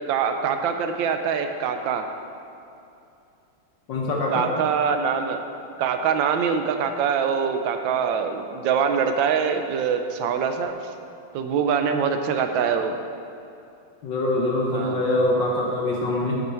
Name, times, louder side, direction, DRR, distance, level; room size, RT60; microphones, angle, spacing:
voice 1, 0.1-2.1 4.3-5.4 5.8-10.7 11.3-13.0 14.7-15.0, right 6 dB, 75° right, 7 dB, 1.3 m, -24 dB
voice 2, 3.9-4.4 14.0-16.4, left 1 dB, 65° left, -2 dB, 1.5 m, -24 dB
8.2 x 6.5 x 4.4 m, 2.7 s
omnidirectional pair, 2.3 m